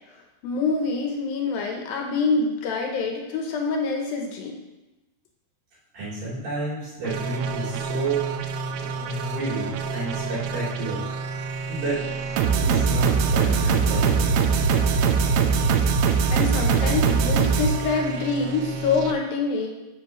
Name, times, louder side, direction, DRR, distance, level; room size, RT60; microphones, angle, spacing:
voice 1, 0.1-4.6 15.5-15.7 16.3-19.7, left 4 dB, 75° left, 2 dB, 2.5 m, -26 dB
voice 2, 5.9-8.3 8.8-11.1 11.7-12.0 12.6-14.3, right 2 dB, 55° right, -9 dB, 5.0 m, -30 dB
sound 1, 7.1-19.1, right 5 dB, 90° right, 2.7 m, -23 dB
10.5 x 7.3 x 3.1 m, 1.0 s
omnidirectional pair, 4.5 m